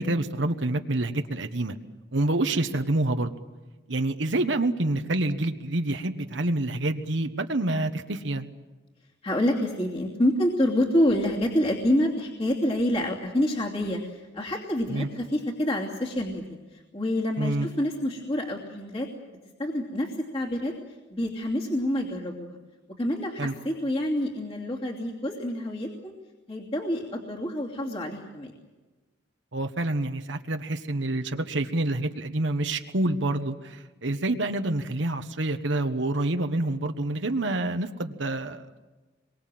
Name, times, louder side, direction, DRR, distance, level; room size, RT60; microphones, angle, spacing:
voice 1, 0.0-1.8 2.1-3.3 3.9-8.5 14.9-15.1 17.4-17.7 23.4-23.5 29.5-38.8, right 2 dB, 70° right, 7 dB, 1.2 m, -27 dB
voice 2, 9.2-19.1 19.6-20.7 21.1-22.6 23.0-26.1 26.5-28.5, left 1 dB, 30° left, -2 dB, 2.8 m, -27 dB
27.0 x 23.0 x 7.7 m, 1.2 s
head